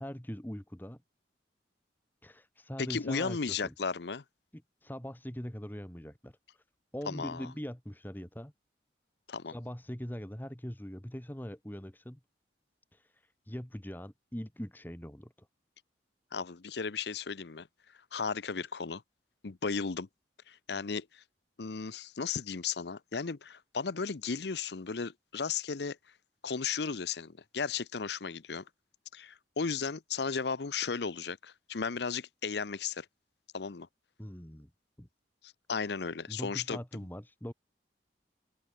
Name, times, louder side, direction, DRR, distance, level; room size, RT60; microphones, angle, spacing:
voice 1, 0.0-1.0 2.2-3.7 4.5-6.6 6.9-8.5 9.5-12.2 12.9-15.5 34.2-34.7 35.0-35.1 36.3-37.5, equal, 10° left, 1.4 m, -42 dB
voice 2, 2.8-4.2 7.1-7.5 9.3-9.5 16.3-17.7 18.1-19.0 19.4-20.1 20.5-21.2 21.6-26.0 26.4-28.6 29.1-33.1 33.5-33.9 35.7-37.0, left 5 dB, 70° left, 0.7 m, -35 dB
open air
head